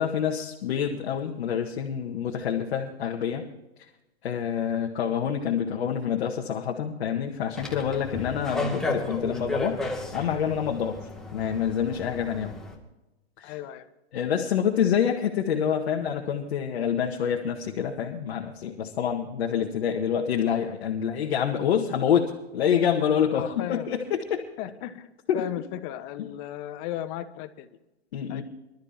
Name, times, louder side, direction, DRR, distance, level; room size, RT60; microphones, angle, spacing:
voice 1, 0.0-3.5 4.2-9.8 10.1-11.0 11.3-12.5 13.4-13.5 14.1-24.4 25.3-25.4 26.2-26.3 28.1-28.4, left 8 dB, 65° left, 0 dB, 1.7 m, -27 dB
sound 1, 7.5-12.7, left 2 dB, ahead, 2.3 m, -33 dB
voice 2, 13.4-13.9 23.3-23.9 24.6-27.7 28.3-28.4, left 12 dB, 40° left, 10 dB, 1.3 m, -36 dB
25.5 x 12.5 x 2.9 m, 0.99 s
hypercardioid pair, 115°, 32 cm